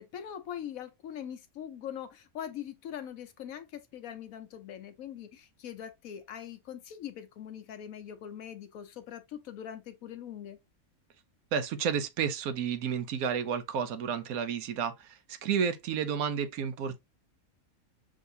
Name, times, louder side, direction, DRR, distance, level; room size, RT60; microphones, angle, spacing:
voice 1, 0.0-10.6, left 9 dB, 75° left, 1.2 m, -42 dB
voice 2, 11.5-17.0, right 7 dB, 80° right, 1.1 m, -31 dB
6.3 x 2.7 x 2.6 m
omnidirectional pair, 1.5 m